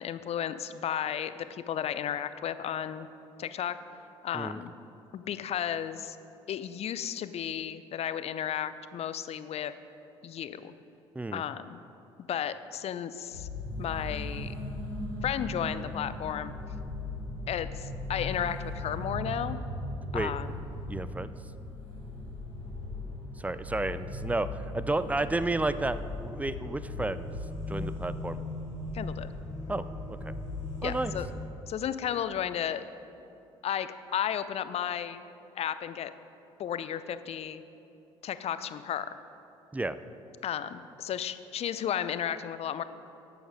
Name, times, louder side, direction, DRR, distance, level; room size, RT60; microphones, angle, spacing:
voice 1, 0.0-3.1 3.4-3.8 4.2-4.7 5.1-6.2 6.5-9.7 10.2-10.7 11.3-11.8 12.3-13.5 13.8-14.5 15.2-16.5 17.5-19.6 20.1-20.5 28.9-29.3 30.8-31.3 31.7-32.8 33.6-35.2 35.6-36.1 36.6-37.6 38.2-39.1 40.4-42.8, left 9 dB, 45° left, 13 dB, 0.5 m, -33 dB
sound 1, 13.3-31.3, left 2 dB, 90° left, 2.7 m, -38 dB
voice 2, 20.9-21.3 23.4-27.3 27.7-28.4 29.7-29.8 30.1-30.3 30.8-31.2 39.7-40.0, right 2 dB, 10° right, 13 dB, 0.5 m, -31 dB
11.0 x 8.0 x 4.9 m, 2.8 s
figure-of-eight pair, 50°, 15 cm